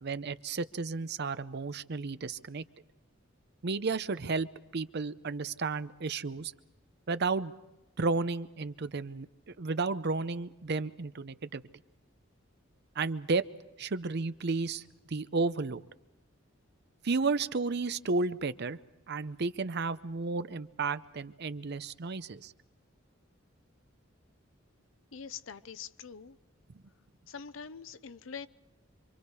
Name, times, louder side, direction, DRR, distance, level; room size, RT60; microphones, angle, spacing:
voice 1, 0.0-2.6 3.6-4.5 4.7-6.5 7.1-7.5 8.0-9.3 9.6-11.6 13.0-13.4 13.8-14.8 15.1-15.8 17.0-18.8 19.1-22.5, right 4 dB, 55° right, 13 dB, 0.7 m, -32 dB
voice 2, 25.1-26.4 27.3-28.5, left 6 dB, 80° left, 15 dB, 0.7 m, -44 dB
27.0 x 25.0 x 4.8 m, 0.98 s
head